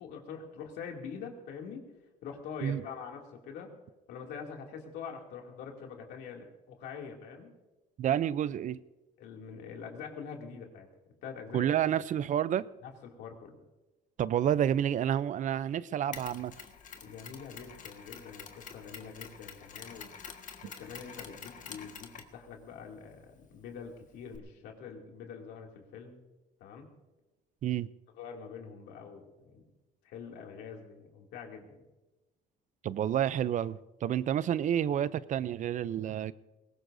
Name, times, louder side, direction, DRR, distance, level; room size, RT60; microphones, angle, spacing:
voice 1, 0.0-1.8 2.2-3.7 4.1-7.5 9.2-10.9 11.2-11.7 12.8-13.6 17.0-20.1 20.6-26.2 26.6-26.9 28.1-29.6 30.0-31.8, left 6 dB, 85° left, 1 dB, 2.6 m, -44 dB
voice 2, 8.0-8.8 11.5-12.7 14.2-16.6 27.6-27.9 32.8-36.3, right 10 dB, 50° right, 18 dB, 0.5 m, -29 dB
Mechanisms, 16.1-24.4, left 7 dB, 50° left, 1.5 m, -48 dB
21.0 x 18.0 x 2.6 m, 1.1 s
cardioid pair, 110°, 17 cm